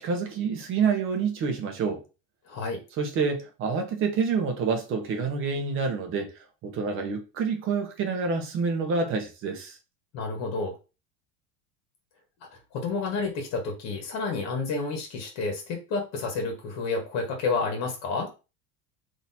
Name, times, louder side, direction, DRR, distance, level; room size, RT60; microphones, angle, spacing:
voice 1, 0.0-2.0 3.0-6.3 6.6-9.8, right 5 dB, 35° right, 1.1 m, -27 dB
voice 2, 2.5-2.8 10.1-10.8 12.5-18.3, left 4 dB, 45° left, 1.3 m, -30 dB
3.9 x 2.9 x 4.1 m
cardioid pair, 165°, 37 cm